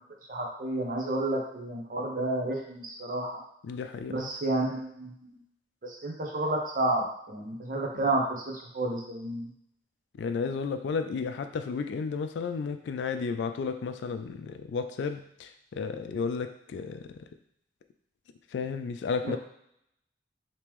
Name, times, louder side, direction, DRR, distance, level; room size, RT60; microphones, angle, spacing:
voice 1, 0.3-3.4 4.1-5.4 5.8-9.5 19.2-19.4, right 2 dB, 50° right, 0 dB, 0.7 m, -31 dB
voice 2, 3.6-4.3 10.2-17.3 18.5-19.4, left 5 dB, 75° left, 8 dB, 0.3 m, -33 dB
3.5 x 2.9 x 3.0 m, 0.73 s
head